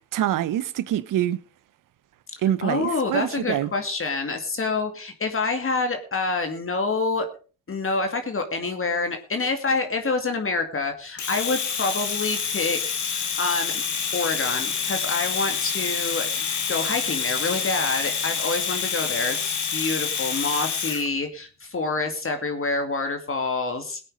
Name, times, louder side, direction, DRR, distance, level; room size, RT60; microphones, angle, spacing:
voice 1, 0.1-1.4 2.4-3.7, right 12 dB, 85° right, 0.8 m, -25 dB
voice 2, 2.6-7.3 7.7-13.8 14.1-16.3 16.7-24.0, left 3 dB, 45° left, 2.4 m, -27 dB
Domestic sounds home sounds, 11.2-21.1, left 6 dB, 65° left, 2.6 m, -27 dB
17.5 x 8.8 x 5.0 m
cardioid pair, 65°, 31 cm